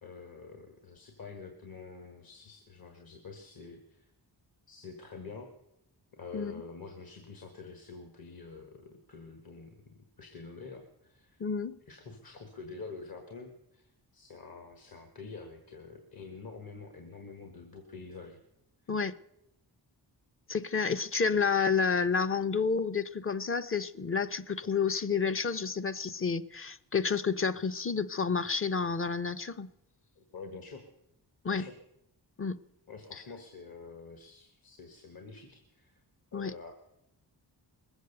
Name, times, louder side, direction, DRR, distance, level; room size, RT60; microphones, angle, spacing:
voice 1, 0.0-4.1 4.7-5.5 6.1-11.4 11.9-18.4 30.2-30.8 31.5-31.7 32.9-36.0 36.3-36.7, left 4 dB, 55° left, 5 dB, 1.7 m, -47 dB
voice 2, 11.4-11.8 18.9-19.1 20.5-29.7 31.4-31.7 32.4-32.6 33.1-33.2 36.3-36.5, left 5 dB, 30° left, 11 dB, 0.6 m, -30 dB
20.5 x 8.1 x 6.8 m, 0.84 s
cardioid pair, 80°, 42 cm